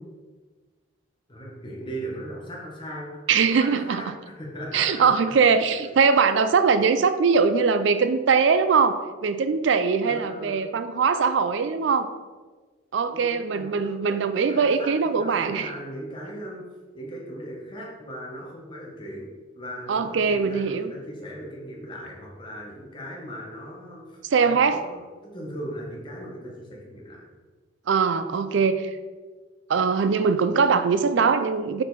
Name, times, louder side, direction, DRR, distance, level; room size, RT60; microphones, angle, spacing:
voice 1, 1.3-3.2 3.6-5.1 10.0-10.6 13.1-16.7 16.9-19.3 19.5-27.3, equal, 25° left, -2 dB, 1.3 m, -38 dB
voice 2, 3.3-4.0 4.7-12.1 12.9-15.7 19.9-20.9 24.3-24.8 27.9-29.0 29.7-31.8, right 5 dB, 65° right, 10 dB, 0.4 m, -21 dB
6.5 x 4.6 x 4.1 m, 1.4 s
head